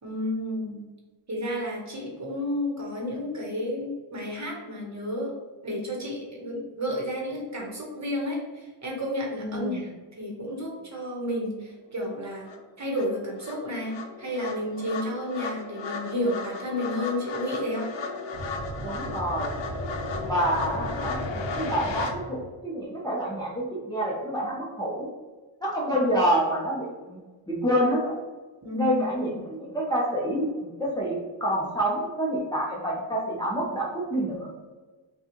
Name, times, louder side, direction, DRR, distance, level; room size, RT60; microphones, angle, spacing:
voice 1, 0.0-0.8 1.3-5.3 5.6-9.9 10.2-12.5 12.8-17.9 28.6-29.3, left 1 dB, 35° right, -1 dB, 1.1 m, -31 dB
voice 2, 9.4-9.9 18.8-19.5 20.2-25.1 25.6-27.2 27.5-28.1 28.7-34.5, equal, 10° left, -5 dB, 0.7 m, -27 dB
sound 1, 12.0-12.1 12.5-22.1, left 3 dB, 65° left, 0.7 m, -35 dB
sound 2, 18.3-22.6, right 1 dB, 10° right, 1.2 m, -37 dB
5.8 x 2.4 x 3.1 m, 1.3 s
wide cardioid pair, 150°, 47 cm